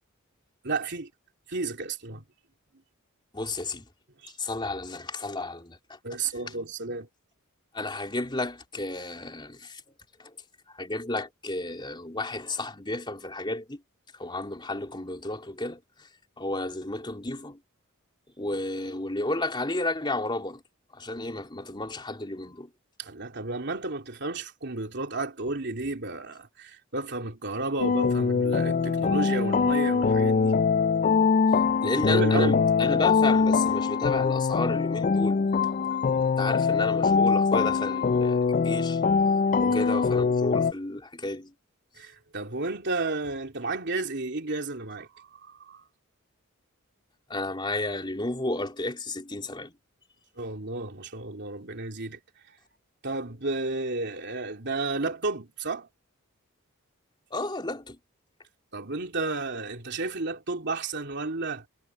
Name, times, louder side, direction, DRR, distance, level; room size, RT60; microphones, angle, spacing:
voice 1, 0.6-1.1 1.5-2.2 4.2-4.3 6.0-7.1 23.0-30.5 31.8-32.6 39.6-39.8 42.0-45.8 50.4-52.2 53.0-55.9 58.7-61.6, right 3 dB, 55° right, 3.2 m, -32 dB
voice 2, 3.3-3.9 4.4-6.0 7.7-9.8 10.2-10.4 10.7-13.8 14.2-16.1 16.4-17.6 18.4-20.6 20.9-22.7 31.8-35.5 36.4-39.0 39.6-41.5 47.3-49.7 57.3-58.0, left 2 dB, 20° left, 3.6 m, -32 dB
sound 1, 27.8-40.7, left 5 dB, 40° left, 0.4 m, -23 dB
head